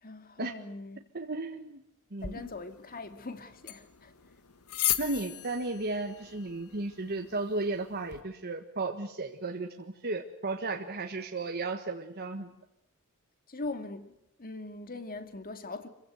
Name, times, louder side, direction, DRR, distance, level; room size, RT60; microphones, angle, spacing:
voice 1, 0.0-1.0 2.2-4.1 13.5-14.1 14.4-15.9, left 2 dB, 40° left, 2.2 m, -41 dB
voice 2, 1.1-1.8 2.1-2.4 5.0-12.5, right 2 dB, 50° right, 1.6 m, -34 dB
sound 1, 2.2-8.2, left 12 dB, 80° left, 1.6 m, -38 dB
26.5 x 16.0 x 9.4 m
head